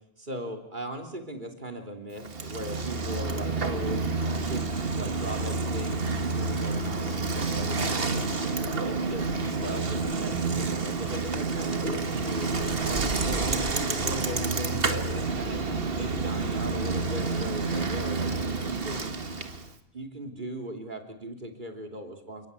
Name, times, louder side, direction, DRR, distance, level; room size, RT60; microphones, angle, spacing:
voice 1, 0.2-9.2 9.6-12.5 12.8-15.6 15.9-18.3 18.6-19.1 19.9-22.5, right 1 dB, 50° right, 4 dB, 3.3 m, -38 dB
Bicycle, 2.2-19.7, right 3 dB, 65° right, 1.8 m, -29 dB
29.5 x 18.5 x 8.3 m, 0.79 s
omnidirectional pair, 1.1 m